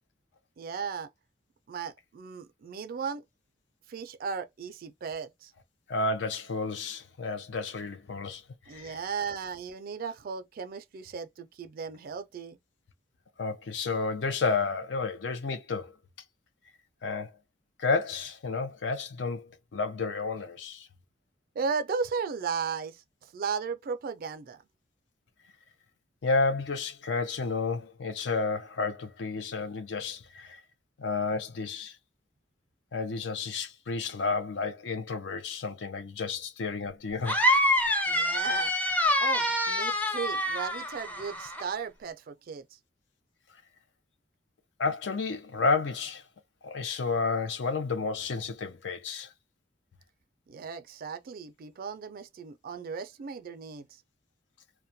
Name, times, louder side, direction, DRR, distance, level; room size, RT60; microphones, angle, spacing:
voice 1, 0.6-1.1 1.7-3.2 3.9-5.5 8.7-12.6 21.6-24.6 38.1-38.7 39.2-42.8 50.5-53.9, right 5 dB, 50° right, 0.3 m, -36 dB
voice 2, 5.9-8.4 8.7-9.0 13.4-15.9 17.0-17.3 17.8-20.9 26.2-30.6 31.0-32.0 32.9-37.4 44.8-46.2 46.6-49.3, left 4 dB, 75° left, 0.5 m, -31 dB
sound 1, 37.3-41.6, left 1 dB, 10° left, 0.4 m, -26 dB
2.2 x 2.1 x 2.6 m
head